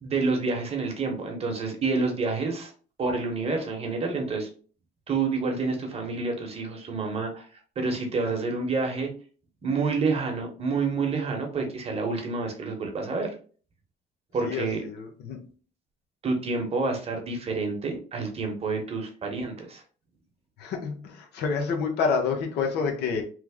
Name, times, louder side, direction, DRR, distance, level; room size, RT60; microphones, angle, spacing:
voice 1, 0.0-2.7 3.0-4.5 5.1-7.5 7.8-9.1 9.6-13.3 14.3-14.8 16.2-19.8, right 4 dB, 35° right, 3 dB, 0.9 m, -28 dB
voice 2, 14.4-15.4 20.6-23.2, left 5 dB, 80° left, 3 dB, 0.8 m, -28 dB
3.2 x 2.1 x 3.5 m, 0.40 s
cardioid pair, 110°, 17 cm